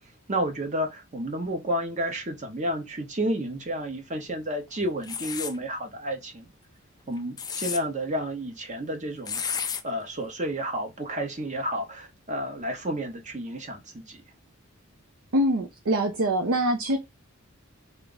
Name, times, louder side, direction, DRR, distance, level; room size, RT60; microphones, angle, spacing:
voice 1, 0.3-6.5 7.1-9.4 9.8-14.2, right 1 dB, 35° right, 0.9 m, -31 dB
sound 1, 5.0-5.6 7.2-7.8 9.3-9.8, left 7 dB, 20° left, 0.3 m, -31 dB
voice 2, 15.3-17.0, right 1 dB, 70° right, 0.6 m, -24 dB
3.4 x 2.5 x 3.9 m
head